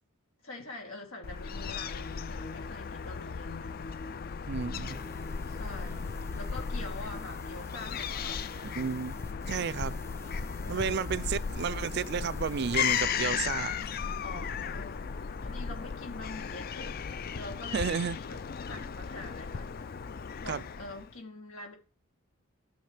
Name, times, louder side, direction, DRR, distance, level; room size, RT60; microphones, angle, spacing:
voice 1, 0.4-4.0 5.5-8.8 10.6-11.2 14.2-17.0 17.3-18.4 18.7-19.8 20.4-21.7, left 2 dB, 85° left, 2.9 m, -45 dB
Fowl / Gull seagull, 1.2-21.1, left 6 dB, 45° left, 0.4 m, -36 dB
voice 2, 4.5-5.0 8.6-9.1 9.5-10.0 10.7-13.7 17.7-18.2 20.5-20.6, right 6 dB, 50° right, 0.4 m, -32 dB
sound 1, 4.8-13.0, left 1 dB, 10° left, 0.7 m, -50 dB
13.5 x 6.3 x 3.3 m
head